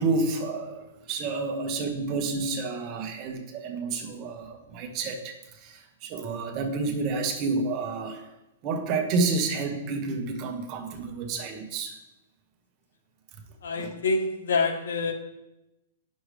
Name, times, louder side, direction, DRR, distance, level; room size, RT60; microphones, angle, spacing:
voice 1, 0.0-8.3 8.6-12.0 13.8-13.9, right 3 dB, 25° right, 4 dB, 1.0 m, -30 dB
voice 2, 13.6-15.1, left 3 dB, 90° left, 5 dB, 1.2 m, -26 dB
9.6 x 6.3 x 3.3 m, 0.93 s
hypercardioid pair, 170°, 0 cm